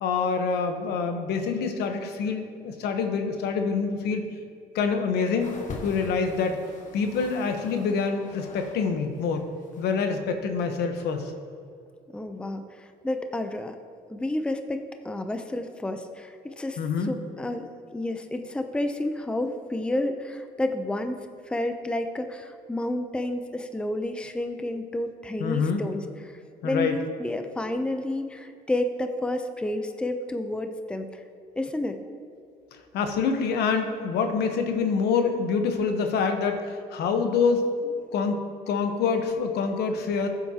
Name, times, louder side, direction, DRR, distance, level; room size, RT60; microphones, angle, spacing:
voice 1, 0.0-4.2 4.7-5.5 5.8-6.6 6.9-9.4 9.8-11.3 16.8-17.1 25.4-25.8 26.6-27.0 32.9-38.4 38.7-40.3, left 5 dB, 75° left, 6 dB, 1.1 m, -26 dB
sound 1, 5.4-8.8 9.1-10.0 10.7-10.8, left 3 dB, 50° left, 1.4 m, -43 dB
voice 2, 12.1-13.8 14.1-21.2 21.4-31.2 31.6-32.0, left 1 dB, 5° left, 7 dB, 0.6 m, -30 dB
14.5 x 8.0 x 2.9 m, 2.4 s
cardioid pair, 110°, 17 cm